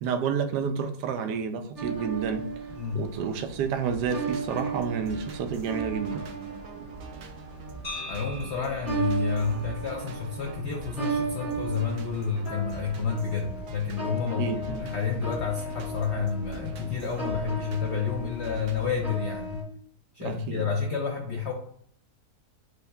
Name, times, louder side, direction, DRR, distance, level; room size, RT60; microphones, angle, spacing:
voice 1, 0.0-2.5 2.9-6.2 14.2-14.8 20.2-20.7, right 6 dB, 80° right, 1.2 m, -30 dB
sound 1, 1.8-19.6, right 3 dB, 15° right, 1.2 m, -36 dB
voice 2, 2.7-3.0 8.1-19.6 20.1-21.5, left 5 dB, 75° left, 0.6 m, -30 dB
sound 2, 3.9-19.1, right 3 dB, 65° right, 0.8 m, -45 dB
sound 3, 7.8-11.9, left 1 dB, 40° left, 1.3 m, -44 dB
7.6 x 2.7 x 2.2 m
omnidirectional pair, 1.8 m